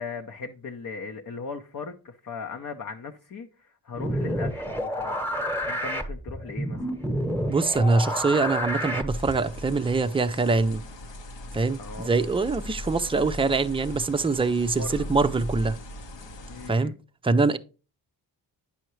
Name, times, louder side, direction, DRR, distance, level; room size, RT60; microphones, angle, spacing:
voice 1, 0.0-5.3 5.6-6.8 11.8-12.2 14.7-15.1 16.5-17.0, left 4 dB, 45° left, 0.7 m, -38 dB
sound 1, 3.9-9.5, equal, 5° left, 1.1 m, -29 dB
voice 2, 7.5-10.8 11.5-15.8 16.7-16.9 17.2-17.6, right 3 dB, 10° right, 0.5 m, -24 dB
sound 2, 9.1-16.7, left 1 dB, 70° left, 1.0 m, -39 dB
8.9 x 5.7 x 3.1 m
cardioid pair, 55°, 45 cm